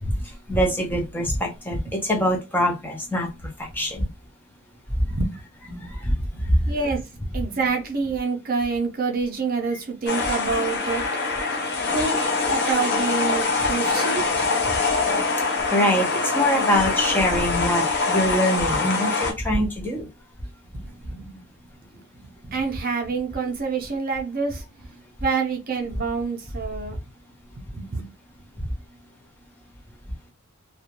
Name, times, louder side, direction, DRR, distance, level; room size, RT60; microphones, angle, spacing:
voice 1, 0.0-4.1 4.9-5.2 5.8-6.7 15.7-20.1 28.6-28.7, equal, 10° left, 0.4 m, -24 dB
voice 2, 5.2-6.0 6.3-11.0 11.9-12.2 12.5-14.5 15.1-15.2 20.7-21.5 22.1-24.6 25.2-27.0 27.5-28.1, right 4 dB, 40° right, 0.5 m, -27 dB
sound 1, 10.1-19.3, left 3 dB, 50° left, 0.6 m, -24 dB
2.3 x 2.1 x 2.9 m
head